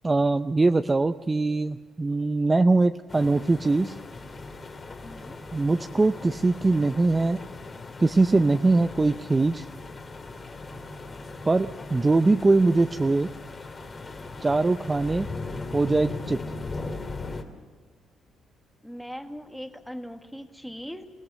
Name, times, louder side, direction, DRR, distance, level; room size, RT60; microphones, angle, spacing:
voice 1, 0.0-3.9 5.5-7.4 8.0-9.6 11.4-13.3 14.4-15.3 15.7-16.4, right 3 dB, 20° right, 9 dB, 0.6 m, -22 dB
sound 1, 3.1-17.4, left 3 dB, 35° left, 2.6 m, -38 dB
voice 2, 5.0-5.4 18.8-21.1, equal, ahead, 6 dB, 1.7 m, -39 dB
24.5 x 17.0 x 6.7 m, 1.5 s
cardioid pair, 90°, 0 cm